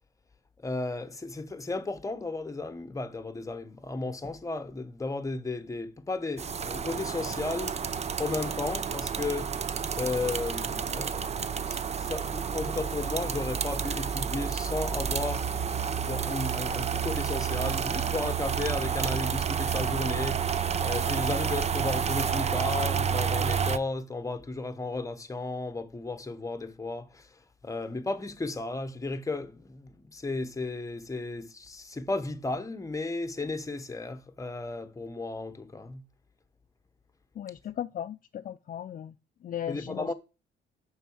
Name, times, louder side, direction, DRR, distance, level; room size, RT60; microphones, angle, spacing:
voice 1, 0.6-7.8 8.2-9.5 10.0-15.5 16.0-36.0 39.7-40.1, left 3 dB, 15° left, 1.0 m, -34 dB
sound 1, 6.4-23.8, right 7 dB, 35° right, 0.5 m, -30 dB
voice 2, 37.4-39.1 39.4-40.1, left 10 dB, 45° left, 0.4 m, -37 dB
6.6 x 5.4 x 6.3 m
cardioid pair, 90°, 20 cm